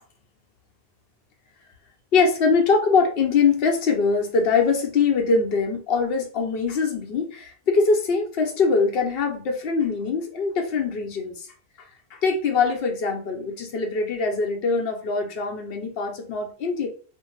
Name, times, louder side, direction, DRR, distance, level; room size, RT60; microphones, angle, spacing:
voice 1, 2.1-11.5 12.1-16.9, left 4 dB, 65° left, 2 dB, 0.8 m, -22 dB
2.6 x 2.1 x 3.0 m, 0.40 s
omnidirectional pair, 1.1 m